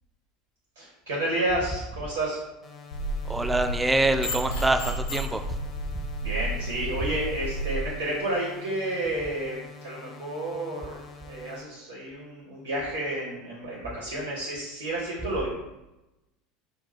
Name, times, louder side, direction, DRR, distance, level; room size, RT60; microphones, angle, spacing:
voice 1, 0.8-2.4 6.2-15.5, right 1 dB, 70° right, -5 dB, 0.9 m, -31 dB
sound 1, 2.6-11.6, left 4 dB, 35° left, 0.8 m, -46 dB
sound 2, 2.9-7.7, right 1 dB, 75° left, 1.5 m, -32 dB
voice 2, 3.3-5.4, right 2 dB, 10° right, 7 dB, 0.4 m, -25 dB
5.4 x 2.3 x 4.2 m, 0.99 s
figure-of-eight pair, 75°, 0 cm